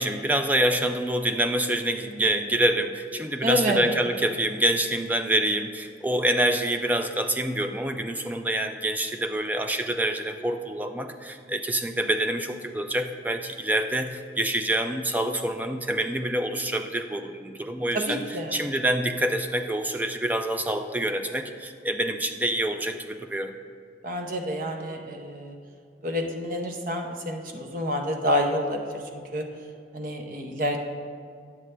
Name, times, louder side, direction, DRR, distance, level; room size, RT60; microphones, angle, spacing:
voice 1, 0.0-18.2 18.5-23.5, right 1 dB, 10° right, 6 dB, 0.3 m, -26 dB
voice 2, 3.4-3.9 17.9-18.6 24.0-25.6 26.0-29.0 29.3-29.4 29.9-30.8, equal, 50° right, 3 dB, 0.7 m, -28 dB
9.4 x 7.3 x 3.3 m, 2.2 s
head